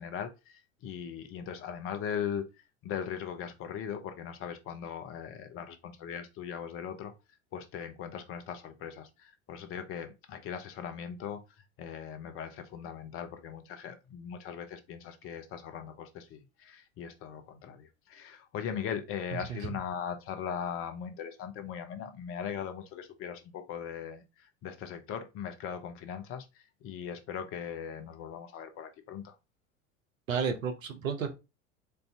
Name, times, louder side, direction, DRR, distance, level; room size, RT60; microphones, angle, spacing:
voice 1, 0.0-2.5 2.8-7.1 7.5-11.4 11.8-29.4, left 8 dB, 35° left, 0.6 m, -39 dB
voice 2, 30.3-31.3, right 6 dB, 75° right, 0.8 m, -32 dB
4.3 x 2.6 x 3.3 m
figure-of-eight pair, 75°, 40 cm